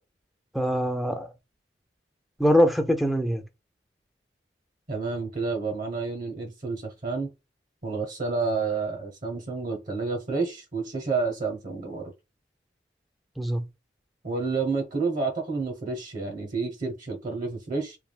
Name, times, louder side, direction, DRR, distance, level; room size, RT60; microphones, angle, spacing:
voice 1, 0.5-1.3 2.4-3.4 13.4-13.6, equal, ahead, 0.4 m, -23 dB
voice 2, 4.9-7.3 7.8-12.1 14.2-18.0, right 4 dB, 50° right, 0.8 m, -30 dB
3.3 x 2.2 x 2.2 m
head